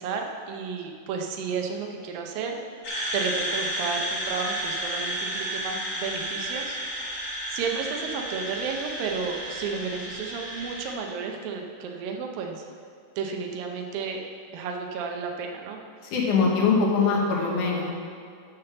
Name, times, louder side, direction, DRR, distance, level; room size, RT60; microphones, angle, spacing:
voice 1, 0.0-2.6 3.1-6.8 7.5-12.6 13.2-14.2 14.5-15.8, right 5 dB, 85° right, 2 dB, 2.6 m, -32 dB
sound 1, 2.8-10.9, right 1 dB, 45° left, 1.4 m, -32 dB
voice 2, 16.1-17.9, left 4 dB, 65° left, -2 dB, 2.7 m, -22 dB
7.4 x 6.6 x 7.0 m, 2.2 s
omnidirectional pair, 4.0 m